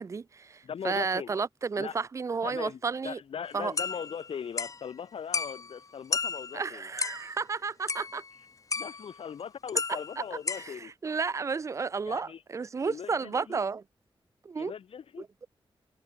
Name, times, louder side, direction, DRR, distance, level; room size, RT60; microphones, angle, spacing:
voice 1, 0.0-3.2 3.5-3.7 6.5-8.2 10.5-13.8 14.4-14.7 15.2-15.3, right 5 dB, 35° right, 0.4 m, -32 dB
voice 2, 0.6-1.4 1.8-1.9 2.4-6.9 8.8-10.9 12.1-12.4 12.8-13.6 14.5-15.2, left 7 dB, 90° left, 3.9 m, -40 dB
sound 1, 3.8-4.8 5.3-5.8 6.1-7.3 7.9-8.4 8.7-9.2 9.7-10.7, left 4 dB, 35° left, 1.3 m, -33 dB
wide cardioid pair, 170°, 9 cm